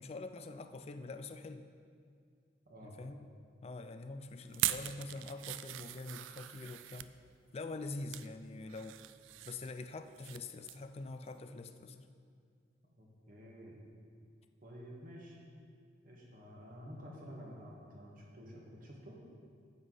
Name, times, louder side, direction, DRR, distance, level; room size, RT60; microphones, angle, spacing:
voice 1, 0.0-1.7 2.8-3.2 3.6-7.1 7.5-9.0 9.5-12.0, left 3 dB, 30° left, 9 dB, 0.4 m, -45 dB
sound 1, 4.5-7.1 7.7-8.3 8.7-10.4 10.7-10.9 11.3-11.4, right 14 dB, 80° right, 0.3 m, -40 dB
voice 2, 12.9-13.8 14.6-15.4 16.0-19.2, equal, 45° right, -2 dB, 1.6 m, -51 dB
9.4 x 8.1 x 3.9 m, 2.2 s
head